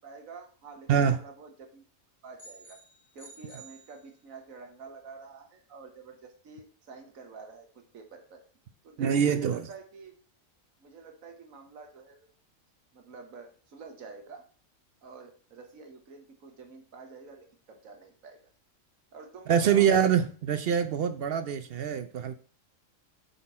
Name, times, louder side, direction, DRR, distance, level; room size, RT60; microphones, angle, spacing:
voice 1, 0.0-1.8 2.2-2.8 3.1-8.4 8.8-10.1 10.8-12.3 12.9-14.4 15.0-18.4 19.1-19.9, right 4 dB, 90° right, 1.6 m, -48 dB
sound 1, 2.4-4.6, right 2 dB, 15° left, 2.2 m, -53 dB
voice 2, 9.0-9.7 19.5-22.4, right 8 dB, 60° right, 0.6 m, -24 dB
7.8 x 4.1 x 4.2 m
omnidirectional pair, 1.4 m